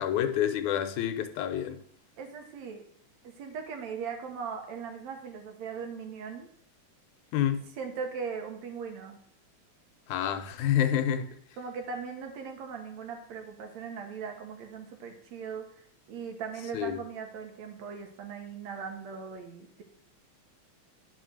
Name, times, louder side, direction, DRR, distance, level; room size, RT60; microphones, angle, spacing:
voice 1, 0.0-1.8 7.3-7.6 10.1-11.3 16.7-17.0, left 10 dB, 85° left, 2.2 m, -28 dB
voice 2, 2.2-2.8 3.2-6.5 7.8-9.2 11.6-15.7 16.1-19.8, right 6 dB, 70° right, 2.5 m, -39 dB
10.0 x 5.4 x 6.4 m
omnidirectional pair, 3.4 m